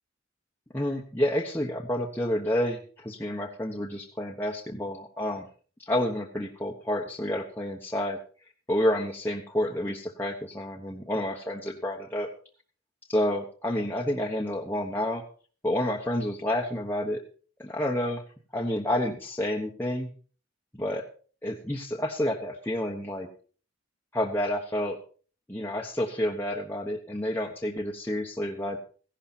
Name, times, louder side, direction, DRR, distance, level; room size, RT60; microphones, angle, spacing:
voice 1, 0.7-5.4 5.8-8.2 8.7-12.3 13.1-15.2 15.6-17.2 17.6-18.2 18.5-20.1 20.8-21.0 21.4-23.3 24.1-25.0 25.5-28.8, left 1 dB, 10° left, -1 dB, 1.1 m, -29 dB
15.5 x 11.5 x 4.3 m, 0.41 s
head